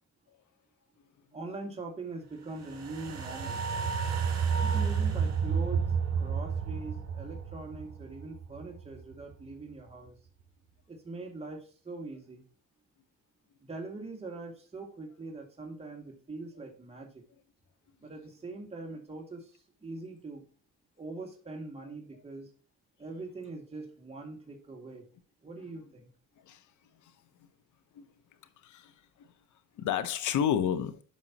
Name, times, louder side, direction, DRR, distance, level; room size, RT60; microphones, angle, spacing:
voice 1, 1.3-3.6 4.6-5.9 6.2-10.2 10.9-12.4 13.6-17.2 18.0-20.4 21.0-22.5 23.0-25.0 25.4-26.1, right 3 dB, 20° right, 2.2 m, -42 dB
sound 1, 2.6-9.0 9.3-9.4, right 6 dB, 60° right, 3.0 m, -31 dB
voice 2, 29.8-31.0, left 9 dB, 80° left, 0.9 m, -31 dB
11.5 x 5.4 x 2.9 m
cardioid pair, 90°, 30 cm